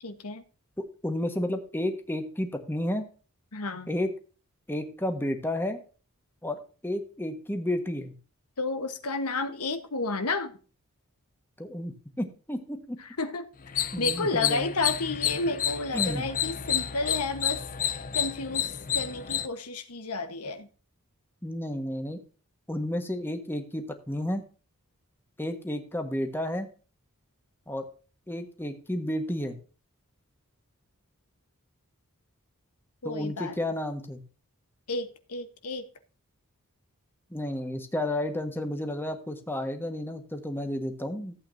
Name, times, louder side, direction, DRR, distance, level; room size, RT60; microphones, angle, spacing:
voice 1, 0.0-0.4 3.5-3.9 8.6-10.5 13.0-13.5 13.7-20.7 33.0-33.6 34.9-35.9, left 3 dB, 85° left, 1.3 m, -32 dB
voice 2, 1.0-3.1 3.9-4.1 4.7-5.8 6.4-8.1 11.6-13.0 13.9-14.7 15.9-16.2 21.4-22.2 22.7-24.4 25.4-26.7 27.7-27.8 28.3-29.6 33.0-34.2 37.3-41.3, left 1 dB, 10° left, 1.4 m, -31 dB
sound 1, 13.6-19.5, left 9 dB, 40° left, 0.6 m, -30 dB
15.0 x 8.4 x 2.7 m
head